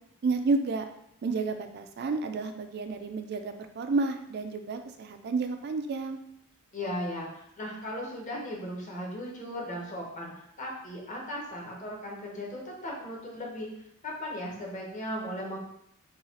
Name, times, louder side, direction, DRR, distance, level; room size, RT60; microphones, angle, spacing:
voice 1, 0.2-0.9 1.2-6.2, right 3 dB, 50° right, 7 dB, 0.4 m, -30 dB
voice 2, 6.7-13.7 14.0-15.6, left 1 dB, 35° left, -2 dB, 0.9 m, -37 dB
4.0 x 2.4 x 4.1 m, 0.76 s
head